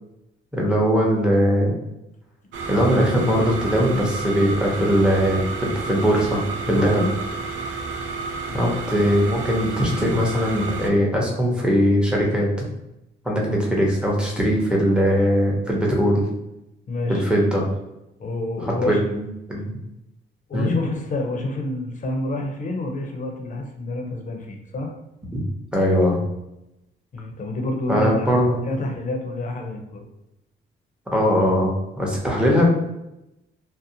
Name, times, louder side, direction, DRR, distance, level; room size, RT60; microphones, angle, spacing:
voice 1, 0.5-1.8 2.7-6.4 6.7-7.0 8.5-12.5 13.2-16.2 17.1-17.7 18.9-19.7 20.5-20.7 25.7-26.2 27.9-28.7 31.1-32.7, equal, 5° right, -3 dB, 0.8 m, -20 dB
sound 1, 2.5-10.9, right 4 dB, 70° right, 0.4 m, -31 dB
voice 2, 6.6-7.1 8.5-8.7 13.5-13.6 16.9-17.2 18.2-19.0 20.5-24.9 27.1-30.1, left 2 dB, 40° left, 3 dB, 0.6 m, -28 dB
2.5 x 2.1 x 2.7 m, 0.90 s
cardioid pair, 90°, 20 cm